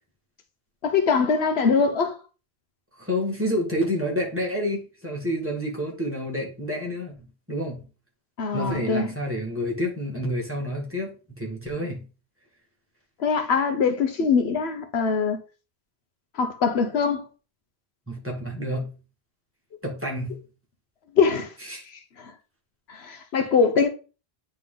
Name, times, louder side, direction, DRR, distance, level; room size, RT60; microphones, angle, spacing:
voice 1, 0.8-2.2 8.4-9.1 13.2-15.4 16.3-17.3 21.2-21.5 22.2-22.3 22.9-23.9, left 5 dB, 75° left, 1.0 m, -22 dB
voice 2, 3.0-7.8 8.5-12.0 18.1-18.9 19.8-20.4 21.7-21.8, equal, 10° right, 1.9 m, -29 dB
9.2 x 3.3 x 3.8 m
omnidirectional pair, 1.1 m